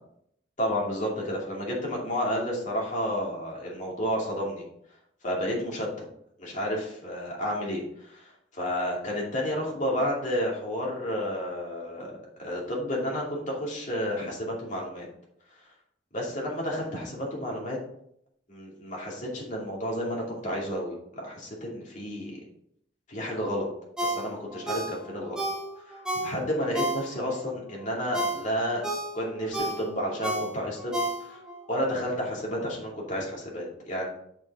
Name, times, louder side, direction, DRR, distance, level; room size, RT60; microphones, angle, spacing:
voice 1, 0.6-4.6 5.2-6.0 6.4-12.1 12.4-15.1 16.1-17.8 18.5-22.4 23.1-23.7 24.0-25.4 25.9-31.4 31.7-34.1, equal, 40° left, -3 dB, 2.5 m, -31 dB
Ringtone, 24.0-27.4 27.8-31.6 32.0-32.1, right 1 dB, 5° right, 1.6 m, -32 dB
7.1 x 6.8 x 3.7 m, 0.71 s
head